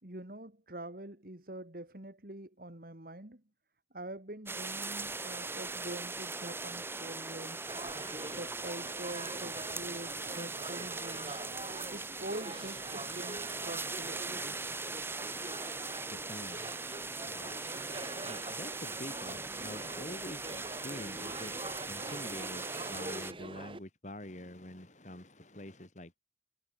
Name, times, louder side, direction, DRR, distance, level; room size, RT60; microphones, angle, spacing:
voice 1, 0.0-3.4 3.9-7.7 8.4-11.3 11.9-14.4, right 1 dB, 55° right, 2.6 m, -45 dB
sound 1, 4.5-23.3, right 3 dB, 15° right, 2.0 m, -40 dB
sound 2, 7.7-23.8, right 2 dB, 30° right, 3.6 m, -44 dB
voice 2, 16.1-16.7 17.2-17.6 18.2-21.5 21.9-26.2, left 1 dB, 45° left, 3.7 m, -46 dB
head